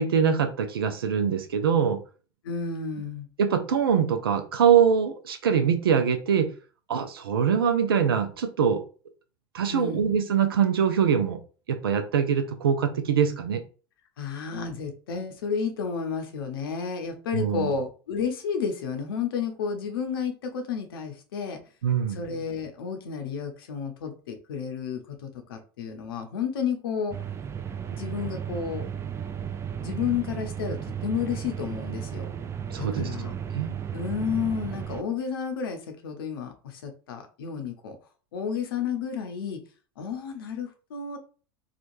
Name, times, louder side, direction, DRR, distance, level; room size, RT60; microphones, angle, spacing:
voice 1, 0.0-2.0 3.4-6.5 6.9-8.8 9.5-11.4 11.7-13.6 17.3-17.7 21.8-22.2 32.7-33.1 33.5-33.7, right 7 dB, 90° right, 7 dB, 0.5 m, -23 dB
voice 2, 2.4-3.3 9.7-10.1 14.2-21.6 22.1-27.1 27.9-28.9 29.8-32.3 32.8-33.3 33.9-38.0 38.3-39.6 40.0-41.2, left 6 dB, 80° left, 6 dB, 0.7 m, -31 dB
sound 1, 27.1-35.0, right 8 dB, 25° right, 0.3 m, -34 dB
3.0 x 2.4 x 2.6 m, 0.37 s
hypercardioid pair, 90°, 12 cm